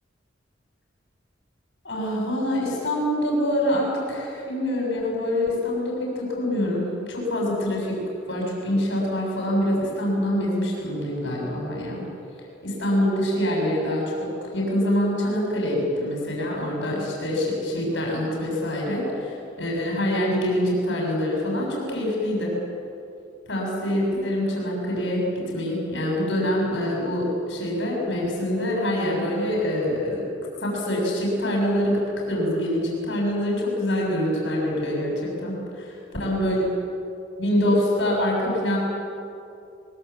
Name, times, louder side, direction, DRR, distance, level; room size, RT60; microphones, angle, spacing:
voice 1, 1.8-7.9 8.3-12.0 12.6-22.5 23.5-30.2 30.6-35.8 36.2-36.6 37.4-38.8, left 1 dB, 65° left, -2 dB, 6.8 m, -25 dB
23.0 x 22.0 x 8.2 m, 2.6 s
head